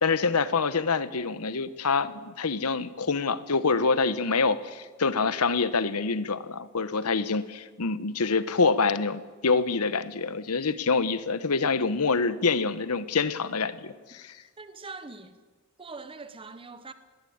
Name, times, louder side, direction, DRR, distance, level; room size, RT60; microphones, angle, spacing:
voice 1, 0.0-14.3, left 4 dB, 85° left, 1.0 m, -26 dB
voice 2, 14.6-15.3 15.8-16.9, right 3 dB, 25° right, 1.0 m, -42 dB
20.0 x 17.5 x 8.7 m
head